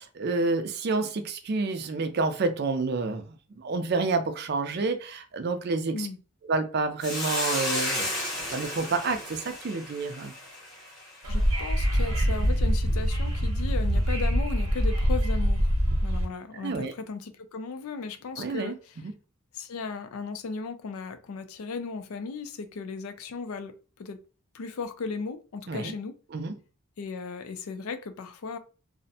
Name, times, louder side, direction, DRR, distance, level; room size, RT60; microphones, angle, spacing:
voice 1, 0.0-6.1 6.5-8.1 8.5-10.3 16.6-16.9 18.4-18.8 19.0-19.1 25.7-25.9 26.3-26.5, right 3 dB, 45° right, 0.4 m, -29 dB
Hiss, 7.0-11.5, left 1 dB, ahead, 0.8 m, -33 dB
Wind / Subway metro underground, 11.2-16.2, equal, 80° right, 0.9 m, -24 dB
voice 2, 11.3-15.7 16.0-19.0 19.5-24.2 24.5-26.1 27.0-28.6, left 4 dB, 75° left, 0.4 m, -36 dB
2.5 x 2.1 x 2.6 m
head